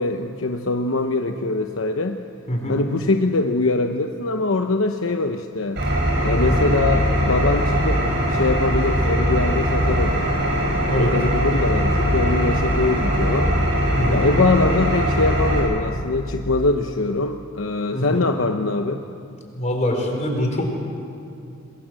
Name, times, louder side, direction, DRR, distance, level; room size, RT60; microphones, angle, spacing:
voice 1, 0.0-2.2 2.7-5.8 6.2-10.3 10.9-13.5 14.1-19.0, left 3 dB, 70° left, 5 dB, 0.9 m, -23 dB
voice 2, 2.5-2.8 6.5-6.7 10.9-11.1 13.9-14.3 17.9-18.3 19.5-20.6, left 1 dB, 35° left, 1 dB, 4.7 m, -24 dB
Engine, 5.8-15.6, equal, 60° right, 7.4 m, -21 dB
26.5 x 21.5 x 7.7 m, 2.5 s
head